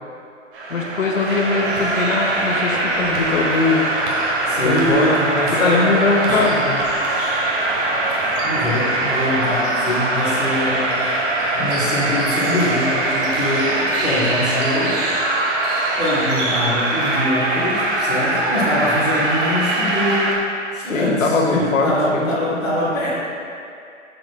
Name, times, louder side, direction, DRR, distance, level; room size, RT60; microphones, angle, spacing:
sound 1, 0.5-20.3, right 2 dB, 45° right, 1.5 m, -22 dB
voice 1, 0.7-3.9 4.6-6.8 20.9-22.6, left 3 dB, 80° left, 1 dB, 1.2 m, -21 dB
voice 2, 4.5-6.0 6.3-6.5 8.4-11.2 11.5-15.0 16.0-20.4 20.7-23.1, left 1 dB, ahead, -18 dB, 0.3 m, -23 dB
10.5 x 6.7 x 2.2 m, 2.5 s
hypercardioid pair, 135°, 38 cm